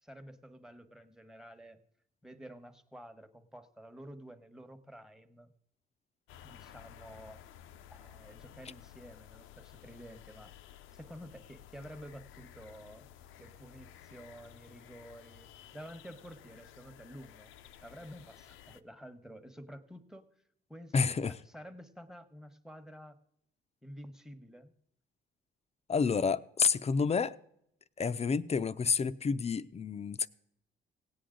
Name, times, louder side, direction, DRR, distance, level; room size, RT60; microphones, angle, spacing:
voice 1, 0.0-1.8 2.2-5.5 6.4-7.4 7.9-10.6 10.9-13.1 13.4-15.5 15.7-17.5 17.8-20.3 20.7-20.9 21.3-23.2 23.8-24.7, equal, 5° right, 1.1 m, -50 dB
Single Car Passing Birds and Dog, 6.3-18.8, left 10 dB, 90° left, 0.6 m, -54 dB
voice 2, 20.9-21.4 25.9-27.3 28.0-30.3, left 5 dB, 35° left, 0.5 m, -29 dB
17.5 x 8.6 x 3.8 m
cardioid pair, 90°, 20 cm